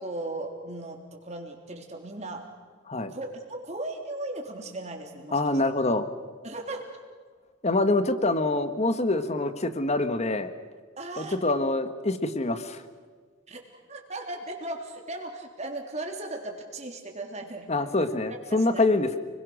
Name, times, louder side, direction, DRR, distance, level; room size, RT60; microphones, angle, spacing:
voice 1, 0.0-2.5 3.1-5.4 6.4-6.9 11.0-11.4 13.5-17.9 18.5-19.0, right 2 dB, 35° right, 2 dB, 3.6 m, -37 dB
voice 2, 5.3-6.1 7.6-10.5 11.2-12.8 17.7-19.2, left 2 dB, 35° left, 10 dB, 1.4 m, -25 dB
30.0 x 21.5 x 6.4 m, 1.6 s
head